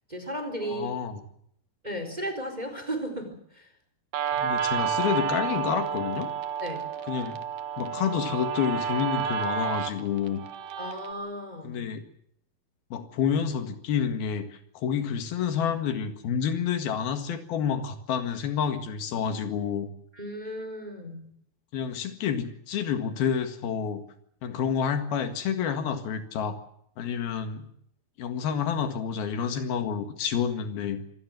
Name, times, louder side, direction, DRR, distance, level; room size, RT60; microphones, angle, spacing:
voice 1, 0.1-0.9 1.8-3.7 6.6-6.8 10.8-11.9 20.1-21.3, right 1 dB, 10° right, 7 dB, 4.0 m, -35 dB
voice 2, 0.6-1.2 4.3-6.3 7.1-7.4 7.8-10.4 11.6-12.0 12.9-19.9 21.7-24.0 24.4-26.6 27.0-27.7 28.2-31.0, left 7 dB, 80° left, 7 dB, 3.8 m, -29 dB
Guitar, 4.1-11.1, right 8 dB, 65° right, 2.9 m, -30 dB
26.0 x 18.0 x 7.7 m, 0.71 s
omnidirectional pair, 4.3 m